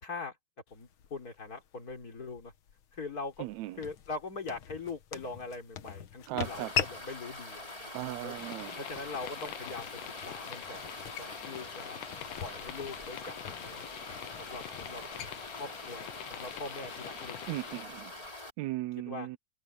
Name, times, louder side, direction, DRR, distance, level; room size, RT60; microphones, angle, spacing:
voice 1, 0.0-0.4 0.7-2.5 2.9-3.5 3.8-7.9 8.2-8.4 8.8-10.0 10.3-10.8 11.2-12.0 12.4-13.8 14.4-15.0 15.6-17.9 18.2-18.3 19.1-19.3, left 3 dB, 30° left, 3.6 m, -42 dB
sound 1, 0.7-16.8, left 8 dB, 60° left, 1.4 m, -43 dB
voice 2, 3.4-3.8 6.3-6.7 7.9-8.8 17.5-18.2 18.6-19.4, right 16 dB, 80° right, 1.6 m, -37 dB
sound 2, 6.4-18.5, left 1 dB, 10° left, 2.5 m, -45 dB
sound 3, 8.3-17.8, left 15 dB, 80° left, 2.3 m, -46 dB
omnidirectional pair, 3.7 m